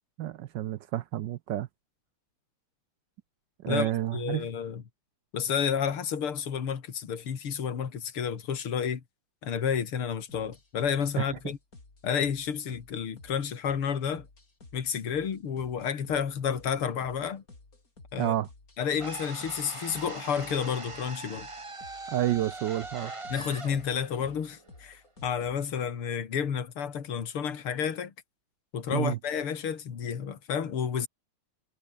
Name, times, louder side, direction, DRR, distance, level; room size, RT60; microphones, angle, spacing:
voice 1, 0.2-1.7 3.6-4.5 11.2-11.3 18.2-18.5 22.1-23.1 28.9-29.2, right 13 dB, 70° right, 1.2 m, -29 dB
voice 2, 3.7-4.8 5.3-9.0 9.4-11.6 12.0-14.3 14.7-17.4 18.1-18.3 18.8-21.5 23.3-28.1 28.7-31.1, left 7 dB, 80° left, 3.1 m, -31 dB
sound 1, 10.3-25.6, left 2 dB, 40° left, 5.2 m, -54 dB
sound 2, 19.0-25.1, right 3 dB, 15° right, 1.2 m, -42 dB
omnidirectional pair, 2.4 m